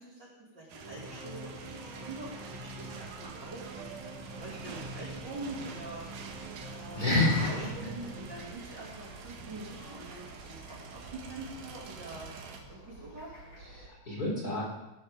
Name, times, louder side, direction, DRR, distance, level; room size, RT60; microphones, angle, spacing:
voice 1, 0.5-3.9 4.4-6.0 6.6-7.1 7.4-10.5 10.9-12.3 12.7-13.3, right 2 dB, 35° right, -5 dB, 3.1 m, -44 dB
sound 1, 0.7-12.6, right 5 dB, 85° right, 2.7 m, -46 dB
sound 2, 0.8-9.3, right 1 dB, 15° right, 5.8 m, -46 dB
sound 3, 4.2-13.9, right 2 dB, 85° left, 7.2 m, -52 dB
voice 2, 6.9-7.7 13.6-14.6, left 2 dB, 30° left, -4 dB, 4.2 m, -29 dB
15.5 x 12.0 x 3.7 m, 0.95 s
omnidirectional pair, 3.6 m